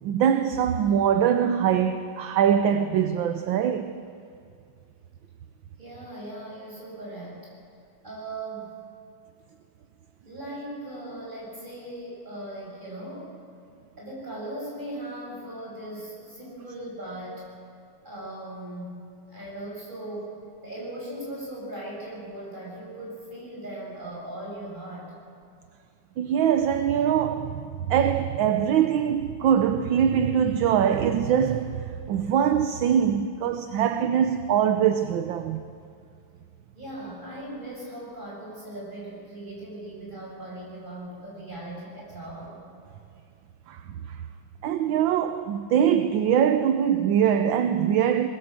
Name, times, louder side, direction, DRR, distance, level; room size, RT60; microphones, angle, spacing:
voice 1, 0.0-4.0 26.2-35.6 43.7-44.2 44.6-48.3, right 8 dB, 70° right, 1.4 m, -23 dB
voice 2, 5.8-7.5 8.0-8.7 10.2-13.4 14.0-17.5 18.0-19.0 19.3-20.4 20.6-25.1 36.7-42.6, right 1 dB, 20° right, 7.5 m, -38 dB
21.5 x 20.0 x 7.6 m
omnidirectional pair, 2.4 m